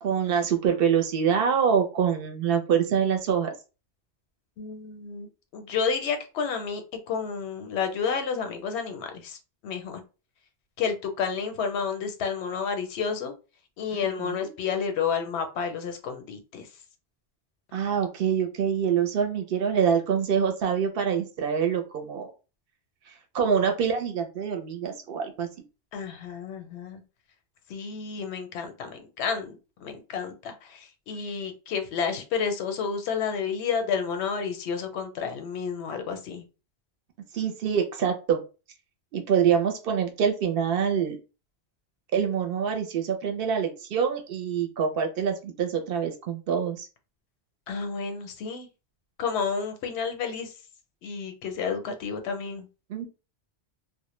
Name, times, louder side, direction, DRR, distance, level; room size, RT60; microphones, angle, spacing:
voice 1, 0.0-3.5 13.9-14.5 17.7-22.3 23.1-25.5 37.3-38.4 39.1-41.2 42.1-46.9 52.9-53.1, right 7 dB, 65° right, 4 dB, 0.7 m, -25 dB
voice 2, 4.6-9.4 9.6-10.0 10.8-13.3 13.8-16.7 25.9-27.0 27.7-36.4 47.7-48.7 49.2-50.5 51.0-52.7, left 6 dB, 85° left, 7 dB, 0.8 m, -30 dB
2.1 x 2.0 x 3.0 m, 0.32 s
omnidirectional pair, 1.1 m